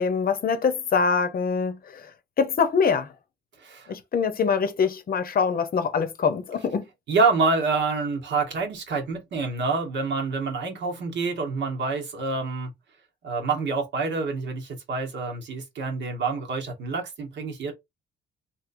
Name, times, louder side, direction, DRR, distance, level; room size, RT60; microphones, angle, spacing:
voice 1, 0.0-2.1 2.4-3.1 3.9-6.8, left 5 dB, 50° left, 0.7 m, -24 dB
voice 2, 3.6-3.9 7.1-12.7 13.2-17.7, right 4 dB, 65° right, 1.2 m, -27 dB
3.0 x 2.8 x 2.5 m
cardioid pair, 90°, 20 cm